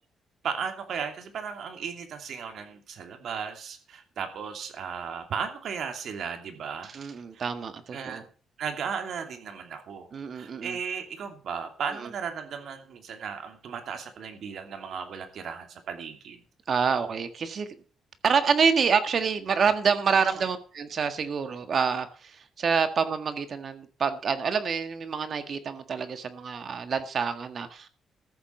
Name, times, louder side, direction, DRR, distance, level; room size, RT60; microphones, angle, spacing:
voice 1, 0.4-7.0 7.3-7.5 7.9-8.3 8.6-10.1 10.3-16.4 20.2-20.5, right 6 dB, 65° right, 6 dB, 2.8 m, -35 dB
voice 2, 6.9-8.2 10.1-10.8 16.7-17.7 18.2-27.9, right 6 dB, 50° right, 9 dB, 1.7 m, -27 dB
14.0 x 7.6 x 6.1 m, 0.41 s
cardioid pair, 105°, 0 cm